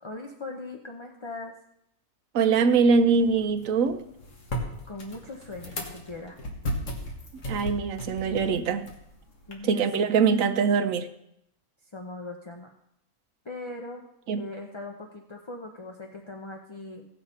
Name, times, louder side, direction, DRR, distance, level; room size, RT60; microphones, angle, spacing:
voice 1, 0.0-1.5 4.9-6.4 9.5-10.2 11.9-12.7 13.4-14.0 14.3-17.1, left 2 dB, 30° left, 0.5 m, -40 dB
voice 2, 2.3-4.0 7.5-8.9 9.6-11.1 14.3-14.5, right 5 dB, 65° right, 1.1 m, -23 dB
sound 1, 2.5-9.5, equal, 55° left, 1.9 m, -37 dB
17.0 x 6.7 x 4.3 m
omnidirectional pair, 1.6 m